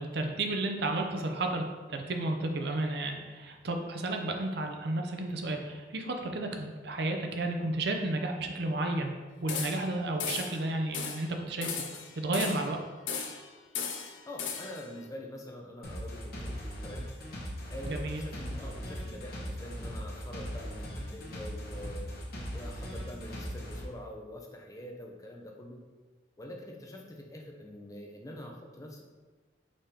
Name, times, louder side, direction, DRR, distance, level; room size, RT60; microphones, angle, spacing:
voice 1, 0.0-1.6 1.9-9.1 9.4-12.8 17.9-18.2, right 2 dB, 60° right, 3 dB, 0.5 m, -32 dB
sound 1, 9.5-9.9 10.2-10.6 10.9-11.3 11.6-12.7 13.1-13.5 13.7-14.8, left 6 dB, 80° left, 0.5 m, -36 dB
voice 2, 14.3-16.6 16.8-17.1 17.7-22.1 22.5-25.8 26.4-29.0, left 1 dB, 20° left, 1 dB, 0.5 m, -45 dB
sound 2, 15.8-23.8, equal, 50° left, 0.9 m, -39 dB
5.1 x 3.6 x 2.8 m, 1.4 s
head